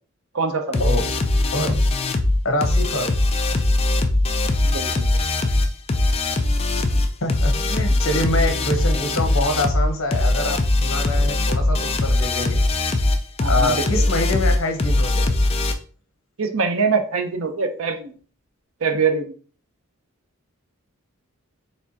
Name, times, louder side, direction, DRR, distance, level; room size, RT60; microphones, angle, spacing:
voice 1, 0.3-0.8 4.6-5.1 7.9-8.0 13.4-13.9 16.4-18.2 18.8-19.3, right 5 dB, 70° right, 7 dB, 0.6 m, -23 dB
sound 1, 0.7-15.7, left 2 dB, 25° left, 0.4 m, -20 dB
voice 2, 1.5-1.8 2.4-3.1 7.2-12.6 13.5-15.3, left 1 dB, 65° left, 5 dB, 1.0 m, -25 dB
4.3 x 3.5 x 2.8 m, 0.41 s
head